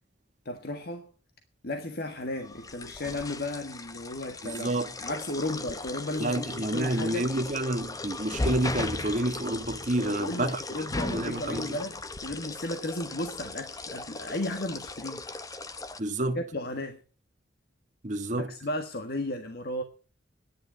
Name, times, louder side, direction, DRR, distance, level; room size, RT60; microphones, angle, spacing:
voice 1, 0.4-1.1 1.6-7.3 10.0-15.3 16.3-17.0 18.4-19.8, left 1 dB, 55° left, 1.7 m, -34 dB
sound 1, 2.4-16.0, left 2 dB, 20° left, 0.8 m, -37 dB
voice 2, 4.4-4.9 6.2-10.6 11.1-11.8 16.0-16.4 18.0-18.5, right 1 dB, 40° right, 1.3 m, -29 dB
10.5 x 10.5 x 8.7 m
head